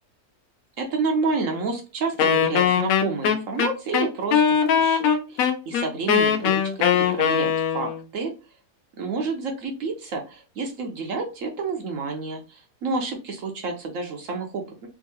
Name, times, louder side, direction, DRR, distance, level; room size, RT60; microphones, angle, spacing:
voice 1, 0.8-6.6 6.9-8.3 9.0-14.9, right 4 dB, 65° right, 2 dB, 1.0 m, -29 dB
Wind instrument woodwind instrument, 2.2-8.0, left 7 dB, 75° left, 1.0 m, -21 dB
3.6 x 2.6 x 2.7 m, 0.31 s
omnidirectional pair, 1.6 m